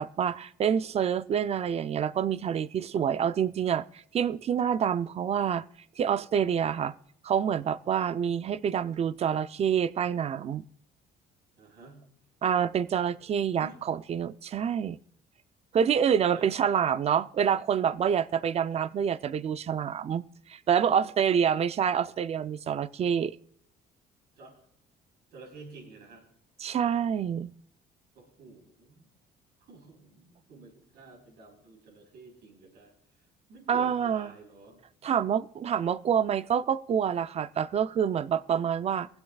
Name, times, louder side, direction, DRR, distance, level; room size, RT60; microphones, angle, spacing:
voice 1, 0.0-5.6 6.0-6.9 7.2-10.6 12.4-15.0 15.7-23.4 26.6-27.5 33.7-34.3 35.0-39.1, right 8 dB, 40° right, 0.5 m, -27 dB
voice 2, 11.6-12.1 13.5-13.8 16.3-16.5 24.4-24.5 25.3-26.2 28.1-29.1 29.6-32.9 33.5-34.8, right 3 dB, 70° right, 4.3 m, -50 dB
22.5 x 8.1 x 2.4 m
cardioid pair, 110°, 17 cm